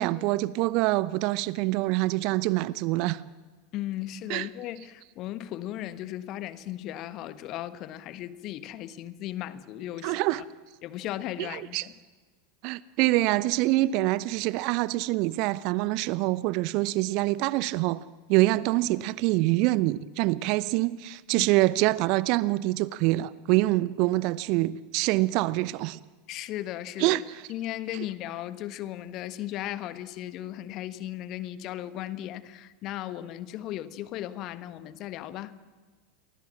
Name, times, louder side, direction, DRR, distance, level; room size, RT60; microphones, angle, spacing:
voice 1, 0.0-3.2 4.3-4.5 10.0-10.4 11.5-11.8 12.6-18.0 18.3-26.0 27.0-27.2, right 18 dB, 45° right, 0.8 m, -25 dB
voice 2, 3.7-10.4 10.8-11.9 21.4-21.5 26.3-27.2 27.5-35.5, left 13 dB, 40° left, 1.4 m, -36 dB
29.5 x 23.5 x 7.5 m
figure-of-eight pair, 85°, 0 cm